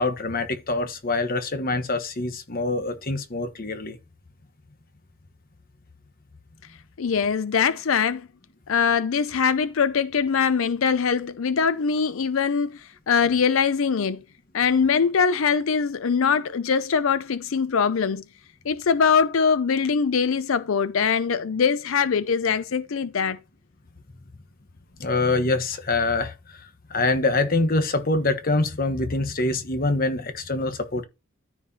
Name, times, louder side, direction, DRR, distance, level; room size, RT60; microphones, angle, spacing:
voice 1, 0.0-4.0 25.0-26.6 26.9-31.0, left 2 dB, 40° left, 1.2 m, -25 dB
voice 2, 7.0-8.3 8.7-12.8 13.1-14.2 14.5-18.2 18.7-23.4, left 6 dB, 65° left, 0.5 m, -22 dB
14.0 x 4.6 x 2.8 m
head